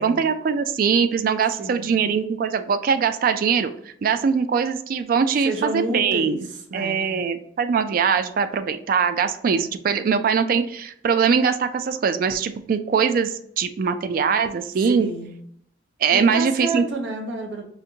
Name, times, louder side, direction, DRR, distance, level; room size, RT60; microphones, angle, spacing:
voice 1, 0.0-3.7 4.0-6.5 6.7-15.1 16.0-16.9, right 6 dB, 50° right, 10 dB, 0.3 m, -22 dB
voice 2, 1.6-1.9 5.4-7.3 9.5-9.7 14.8-15.4 16.1-17.7, right 2 dB, 90° right, 3 dB, 0.7 m, -30 dB
5.0 x 2.5 x 2.7 m, 0.69 s
head